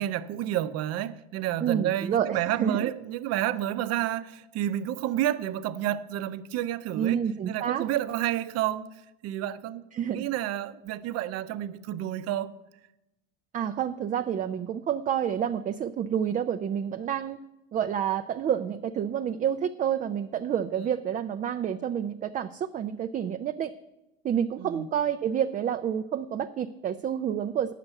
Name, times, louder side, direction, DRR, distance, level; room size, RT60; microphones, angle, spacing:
voice 1, 0.0-8.9 9.2-9.8 10.1-12.5 24.6-24.9, right 12 dB, 50° right, 0.7 m, -30 dB
voice 2, 1.6-2.9 7.0-7.8 9.9-10.3 13.5-17.4 17.7-23.7 24.2-27.7, right 9 dB, 25° right, 0.4 m, -29 dB
8.7 x 6.7 x 8.0 m
supercardioid pair, 100°, 32 cm